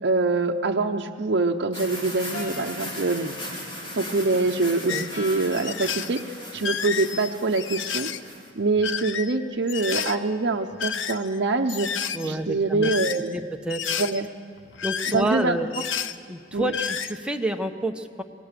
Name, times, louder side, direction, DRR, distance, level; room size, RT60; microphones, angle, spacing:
voice 1, 0.0-3.3 4.0-8.1 8.6-11.9 12.2-13.4 14.0-14.3 15.1-15.6 16.5-16.7, right 3 dB, 65° right, 1 dB, 0.8 m, -25 dB
sound 1, 1.7-8.5, left 1 dB, 30° left, 3.5 m, -38 dB
sound 2, 2.3-3.5 5.1-6.0 9.9-10.9, left 2 dB, 65° left, 1.9 m, -41 dB
sound 3, 4.9-5.1 5.5-6.2 6.6-8.2 8.7-9.3 9.7-10.2 10.7-11.4 11.7-12.3 12.8-13.3 13.7-14.2 14.6-15.4 15.7-16.2 16.5-17.1, left 7 dB, 85° left, 0.7 m, -30 dB
voice 2, 12.1-12.9 13.3-13.9 14.8-15.7 16.3-18.2, right 1 dB, 5° right, 4 dB, 1.0 m, -28 dB
25.0 x 19.0 x 6.8 m, 2.2 s
head